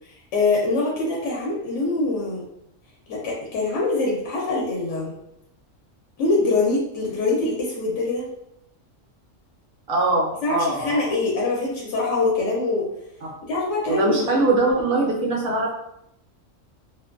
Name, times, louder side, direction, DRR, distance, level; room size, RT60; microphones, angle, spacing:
voice 1, 0.0-2.4 3.1-5.1 6.2-8.3 10.4-12.9 13.4-14.3, left 3 dB, 70° left, -3 dB, 0.9 m, -24 dB
voice 2, 9.9-11.0 13.9-15.7, right 2 dB, 55° right, -2 dB, 0.7 m, -22 dB
2.4 x 2.1 x 2.4 m, 0.79 s
omnidirectional pair, 1.4 m